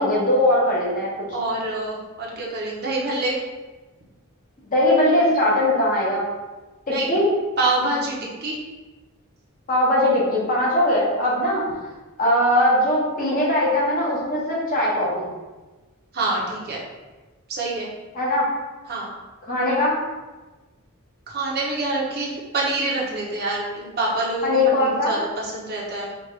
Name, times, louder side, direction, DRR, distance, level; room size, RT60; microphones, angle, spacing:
voice 1, 0.0-1.1 4.7-6.2 6.9-7.3 9.7-11.6 12.2-15.3 18.1-18.5 19.5-19.9 24.4-25.1, left 1 dB, 40° left, -5 dB, 1.1 m, -20 dB
voice 2, 1.3-3.4 6.9-7.1 7.6-8.5 16.1-16.8 17.5-17.9 18.9-19.1 21.3-26.1, right 2 dB, 45° right, -4 dB, 0.9 m, -26 dB
5.1 x 2.5 x 3.2 m, 1.2 s
head